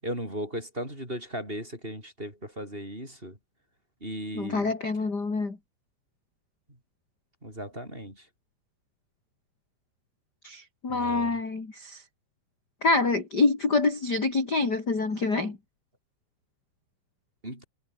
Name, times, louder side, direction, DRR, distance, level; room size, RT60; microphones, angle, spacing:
voice 1, 0.0-3.4 4.0-4.7 7.4-8.2 10.9-11.4 17.4-17.7, right 1 dB, 10° right, 8.0 m, -36 dB
voice 2, 4.3-5.6 10.4-12.0 12.8-15.6, left 3 dB, 25° left, 3.8 m, -26 dB
omnidirectional pair, 5.4 m